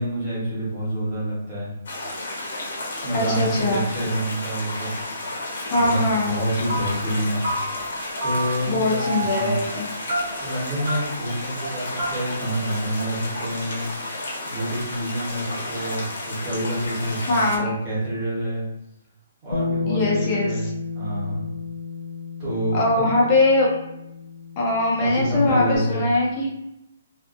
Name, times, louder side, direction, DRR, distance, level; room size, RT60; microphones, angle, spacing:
voice 1, 0.0-1.7 3.0-4.9 5.7-7.4 8.2-9.6 10.4-13.8 14.5-18.7 19.4-21.5 22.4-23.1 24.9-26.1, right 1 dB, 20° right, -9 dB, 1.0 m, -27 dB
sound 1, 1.9-17.6, left 1 dB, 55° left, 0.7 m, -32 dB
voice 2, 3.1-3.9 5.7-6.4 8.7-9.9 17.3-17.7 19.9-20.6 22.7-23.7 24.6-26.5, left 2 dB, 20° left, -4 dB, 0.4 m, -21 dB
sound 2, 5.7-6.1 6.3-7.2 7.4-8.0 8.2-8.8 9.0-9.5 10.1-10.6 10.9-11.0 11.3-11.4 11.6-11.7 12.0-12.1, right 1 dB, 50° right, 0.8 m, -29 dB
Bass guitar, 19.5-25.8, left 4 dB, 85° left, 0.3 m, -32 dB
2.5 x 2.4 x 2.5 m, 0.85 s
hypercardioid pair, 180°, 0 cm